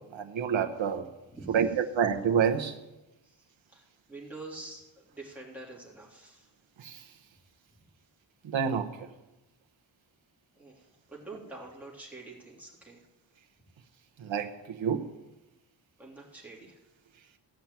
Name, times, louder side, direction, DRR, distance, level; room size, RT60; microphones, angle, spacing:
voice 1, 0.1-1.1 1.5-2.8 6.8-7.0 8.5-8.9 14.2-15.0, right 7 dB, 85° right, 5 dB, 1.0 m, -28 dB
voice 2, 1.3-1.8 3.2-6.5 7.8-7.9 10.5-13.0 16.0-16.8, right 2 dB, 5° right, -4 dB, 3.3 m, -47 dB
16.0 x 5.8 x 8.9 m, 1.0 s
wide cardioid pair, 150°, 46 cm